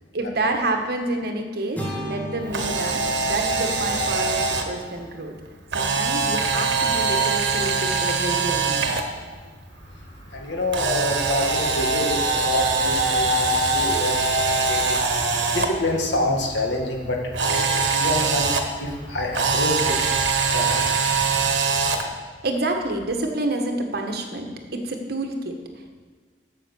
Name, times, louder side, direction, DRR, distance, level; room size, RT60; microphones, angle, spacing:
voice 1, 0.1-5.3 5.7-8.9 9.3-9.4 22.4-25.6, right 2 dB, 60° right, 4 dB, 1.4 m, -28 dB
sound 1, 1.7-5.8, left 1 dB, 10° left, 2.3 m, -36 dB
Camera, 2.4-4.6 5.7-9.0 10.7-15.7 17.3-18.6 19.3-22.0, right 4 dB, 85° right, 1.2 m, -22 dB
sound 2, 9.7-21.7, equal, 30° left, 2.2 m, -41 dB
voice 2, 10.3-15.1 15.3-18.5 18.8-20.0 20.5-21.1 21.8-22.0, left 1 dB, 80° left, 1 dB, 1.9 m, -27 dB
9.3 x 7.1 x 7.0 m, 1.5 s
head